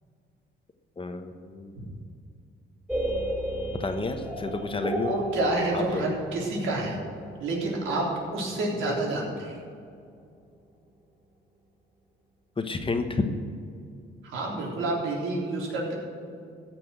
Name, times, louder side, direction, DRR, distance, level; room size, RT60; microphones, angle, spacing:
voice 1, 1.0-1.9 3.8-5.2 5.7-6.0 12.6-13.2, left 3 dB, 25° left, 6 dB, 1.2 m, -30 dB
sound 1, 2.9-8.7, right 1 dB, 5° right, 3.1 m, -33 dB
voice 2, 5.1-7.0 7.4-8.1 8.3-9.5 14.3-15.9, right 2 dB, 85° right, -3 dB, 3.6 m, -28 dB
15.0 x 6.2 x 7.9 m, 2.4 s
cardioid pair, 90°, 20 cm